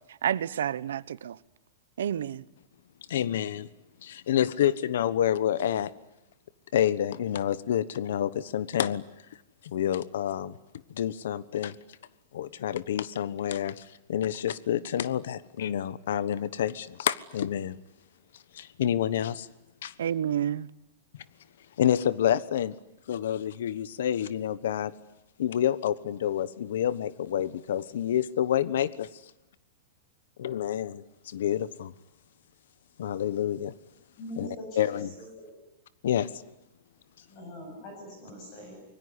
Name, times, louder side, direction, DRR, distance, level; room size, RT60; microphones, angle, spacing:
voice 1, 0.2-1.4 2.0-2.4 20.0-20.7, right 9 dB, 85° right, 1.0 m, -29 dB
voice 2, 3.1-3.7 4.0-5.9 6.7-9.0 9.6-10.5 10.9-11.8 12.3-17.8 18.5-19.5 19.8-19.9 21.8-22.7 23.1-24.9 25.4-29.1 30.4-31.9 33.0-33.7 34.4-35.1 36.0-36.3, left 10 dB, 65° left, 1.2 m, -28 dB
voice 3, 34.2-35.6 37.3-38.8, equal, 25° left, 8.0 m, -43 dB
25.0 x 22.5 x 9.8 m
supercardioid pair, 180°, 0 cm